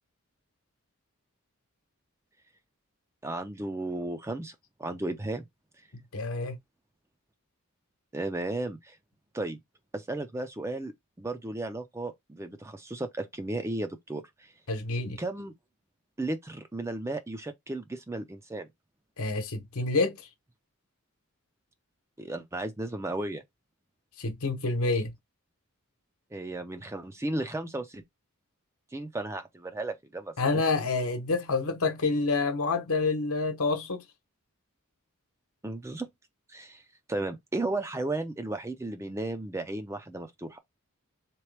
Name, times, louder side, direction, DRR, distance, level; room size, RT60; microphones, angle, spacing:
voice 1, 3.2-5.4 8.1-9.0 9.3-9.6 9.9-10.9 11.2-14.5 15.2-15.5 16.2-18.7 22.2-23.4 26.3-28.0 28.9-30.6 35.6-36.1 36.5-36.8 37.1-40.6, right 2 dB, 10° right, 0.4 m, -34 dB
voice 2, 5.9-6.6 14.7-15.2 19.2-20.3 24.2-25.1 30.4-34.0, left 3 dB, 80° left, 1.0 m, -28 dB
3.9 x 3.0 x 3.3 m
head